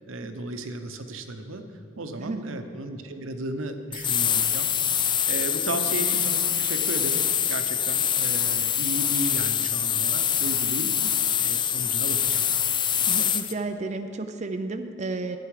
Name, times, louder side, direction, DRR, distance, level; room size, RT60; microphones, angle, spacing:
voice 1, 0.1-1.6 2.0-4.7 5.3-10.9 11.4-12.4, right 2 dB, 90° right, 7 dB, 0.8 m, -34 dB
voice 2, 2.2-2.5 5.7-5.8 10.8-11.1 13.1-15.4, right 3 dB, 35° right, 7 dB, 0.5 m, -32 dB
sound 1, 3.9-13.5, left 9 dB, 25° left, 0.3 m, -25 dB
13.5 x 9.3 x 4.9 m, 2.5 s
head